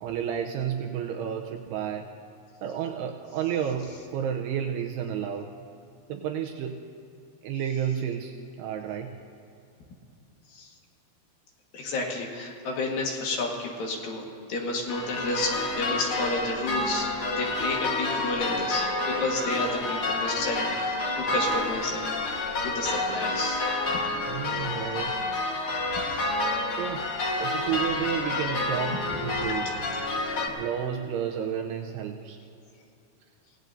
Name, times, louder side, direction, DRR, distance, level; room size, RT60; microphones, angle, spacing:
voice 1, 0.0-2.1 2.6-5.5 6.1-6.8 7.4-9.2 24.3-25.1 26.8-27.1 27.4-29.8 30.6-32.4, right 8 dB, 80° right, 2 dB, 2.6 m, -31 dB
voice 2, 11.7-17.1 17.4-23.8 24.5-24.8 26.2-26.3, left 2 dB, 60° left, -1 dB, 3.0 m, -31 dB
sound 1, 14.9-30.5, left 2 dB, 85° left, 1.2 m, -29 dB
28.0 x 17.0 x 2.7 m, 2.7 s
omnidirectional pair, 5.0 m